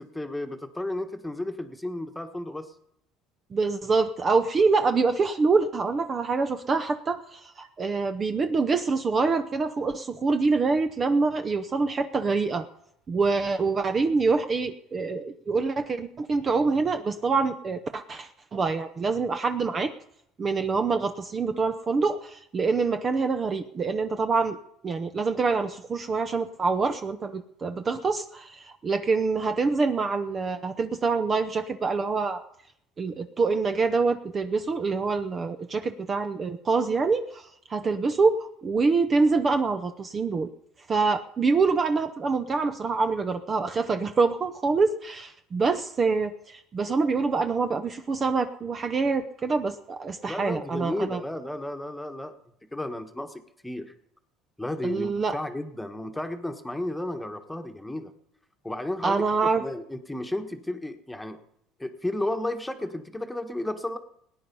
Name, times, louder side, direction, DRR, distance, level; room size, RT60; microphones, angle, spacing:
voice 1, 0.0-2.7 50.3-52.3 52.7-53.9 54.6-58.1 58.6-59.2 59.6-61.4 61.8-64.0, left 1 dB, 5° left, 7 dB, 1.4 m, -33 dB
voice 2, 3.5-12.7 13.1-19.9 20.4-24.6 24.8-32.4 33.0-40.5 40.9-51.2 54.8-55.3 59.0-59.6, right 4 dB, 30° right, 9 dB, 0.8 m, -25 dB
18.5 x 9.7 x 5.5 m, 0.73 s
supercardioid pair, 110°, 0 cm